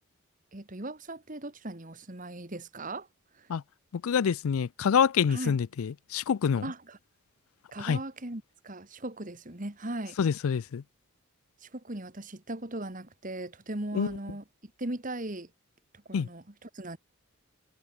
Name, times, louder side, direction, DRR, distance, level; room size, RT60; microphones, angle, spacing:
voice 1, 0.5-3.1 3.3-3.5 5.3-5.6 6.6-7.0 7.7-10.2 11.6-15.5 16.1-17.0, right 1 dB, 35° right, 1.7 m, -38 dB
voice 2, 3.9-6.7 7.8-8.0 10.2-10.8 13.9-14.1 16.1-16.3, left 7 dB, 75° left, 0.4 m, -26 dB
head